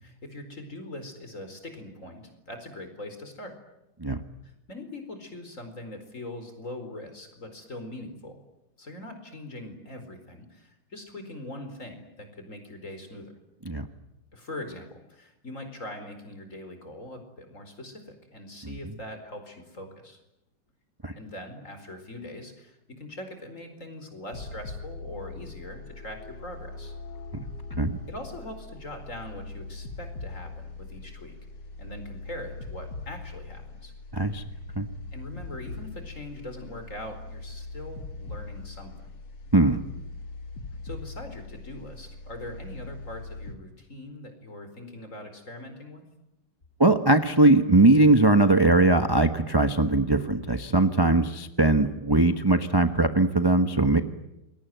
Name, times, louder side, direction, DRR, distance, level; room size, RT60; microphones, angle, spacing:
voice 1, 0.0-3.6 4.4-8.4 8.8-13.3 14.3-20.2 21.1-26.9 28.1-31.3 31.8-33.9 35.1-39.1 40.8-46.0, left 1 dB, 40° left, 7 dB, 4.8 m, -42 dB
sound 1, 24.3-43.5, left 3 dB, 75° left, 3.1 m, -41 dB
voice 2, 34.1-34.4 34.7-34.9 39.5-39.8 46.8-54.0, right 2 dB, 15° right, 8 dB, 1.0 m, -20 dB
28.0 x 22.5 x 9.3 m, 0.87 s
omnidirectional pair, 2.0 m